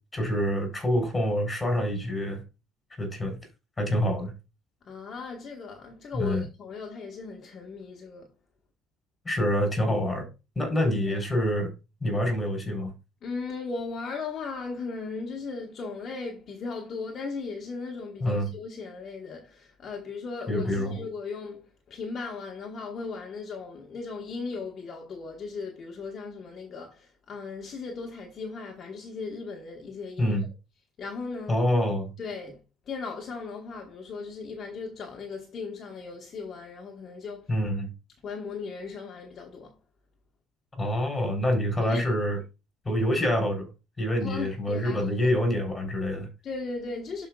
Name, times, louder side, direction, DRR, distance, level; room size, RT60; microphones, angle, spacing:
voice 1, 0.1-2.4 3.0-3.4 3.8-4.3 6.1-6.5 9.2-10.3 10.6-11.7 12.0-12.9 18.2-18.5 20.5-21.0 30.2-30.5 31.5-32.1 37.5-37.9 40.8-42.4 42.9-43.7 44.0-46.3, left 1 dB, 15° left, 3.7 m, -26 dB
voice 2, 4.8-8.3 10.8-11.2 13.2-30.4 31.0-31.6 32.2-37.5 38.2-39.8 41.8-42.0 44.2-45.0 46.4-47.3, left 4 dB, 35° left, 1.2 m, -37 dB
12.0 x 5.0 x 2.3 m
cardioid pair, 145°, 0 cm